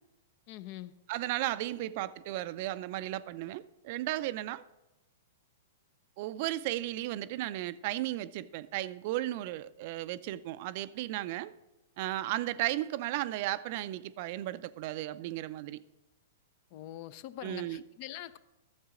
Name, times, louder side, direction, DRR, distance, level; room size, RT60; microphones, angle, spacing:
voice 1, 0.5-0.9 16.7-18.4, left 13 dB, 45° left, 0.5 m, -44 dB
voice 2, 1.1-4.6 6.2-11.5 12.0-15.8 17.4-17.8, right 15 dB, 50° right, 0.4 m, -35 dB
13.0 x 7.3 x 3.8 m
hypercardioid pair, 110°, 0 cm